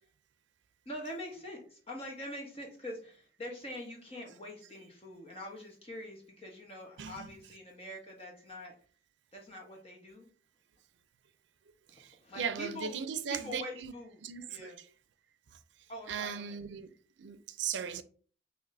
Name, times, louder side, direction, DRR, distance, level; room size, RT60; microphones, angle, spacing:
voice 1, 0.8-8.7 9.3-10.3 11.9-14.2 14.5-14.8 15.9-16.6, left 1 dB, 30° left, 1.2 m, -44 dB
voice 2, 7.0-7.3 11.9-13.9 14.2-14.9 16.1-16.9 17.2-18.0, right 7 dB, 80° right, 0.4 m, -38 dB
5.9 x 2.9 x 2.6 m
head